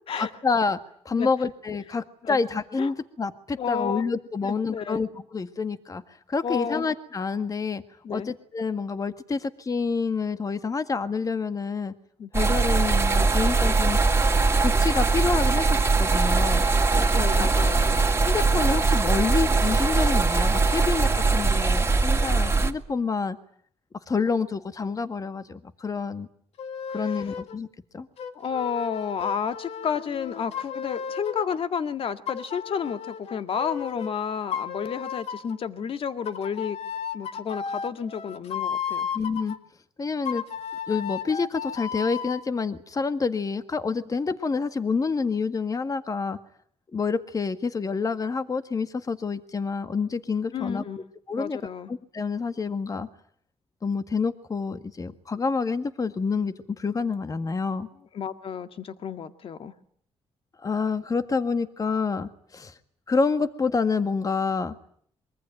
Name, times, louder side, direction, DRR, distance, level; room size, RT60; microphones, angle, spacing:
voice 1, 0.2-0.8 1.0-6.0 6.3-7.8 8.1-11.9 12.3-14.0 14.6-16.6 17.1-17.5 18.2-23.4 24.1-26.3 26.9-27.7 27.9-28.1 39.1-39.6 40.0-40.4 40.9-46.4 46.9-50.8 51.3-51.6 51.9-53.1 53.8-57.9 60.6-62.7 63.1-64.7, left 4 dB, 35° left, 10 dB, 1.8 m, -28 dB
voice 2, 3.6-4.0 4.4-5.1 6.4-6.8 8.0-8.3 12.2-12.3 16.9-18.0 26.9-27.4 28.3-36.8 37.1-39.1 50.5-51.0 51.4-51.9 58.1-59.7, left 7 dB, 60° left, 9 dB, 1.9 m, -31 dB
sound 1, 12.3-22.7, right 3 dB, 20° right, 2.4 m, -21 dB
sound 2, 26.6-27.6 28.2-31.6 32.3-34.1 34.5-35.6 36.3-39.6 40.3-42.5, left 7 dB, 75° left, 2.1 m, -34 dB
25.0 x 23.5 x 9.2 m, 0.63 s
cardioid pair, 95°, 11 cm